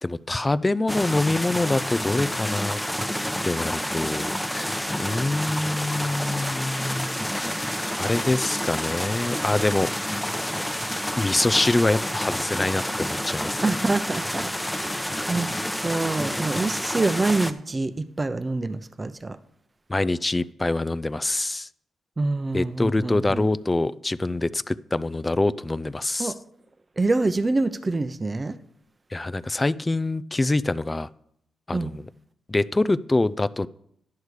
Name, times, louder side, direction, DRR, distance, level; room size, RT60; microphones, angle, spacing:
voice 1, 0.0-2.8 3.4-7.7 8.0-9.9 11.2-13.6 19.9-21.7 22.5-26.3 29.1-31.1 31.7-32.1 32.5-33.7, left 2 dB, 25° left, 0.4 m, -25 dB
sound 1, 0.9-17.5, equal, 5° left, 0.9 m, -29 dB
voice 2, 13.6-14.5 14.9-15.5 15.8-19.4 22.2-23.5 26.2-26.3 27.0-28.6 31.7-31.9, right 3 dB, 30° right, 0.7 m, -26 dB
10.5 x 6.5 x 4.9 m
supercardioid pair, 50°, 0 cm